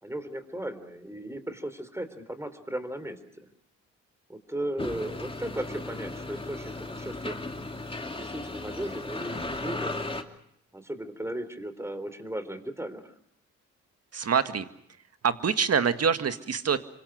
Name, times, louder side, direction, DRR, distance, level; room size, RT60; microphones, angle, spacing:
voice 1, 0.0-3.5 4.3-7.4 8.1-9.9 10.7-13.0, right 1 dB, 10° right, 11 dB, 4.0 m, -36 dB
sound 1, 4.8-10.2, left 2 dB, 15° left, 2.8 m, -36 dB
voice 2, 14.1-14.7 15.2-16.8, right 6 dB, 45° right, 10 dB, 1.9 m, -25 dB
27.0 x 25.0 x 6.5 m, 0.72 s
hypercardioid pair, 50°, 34 cm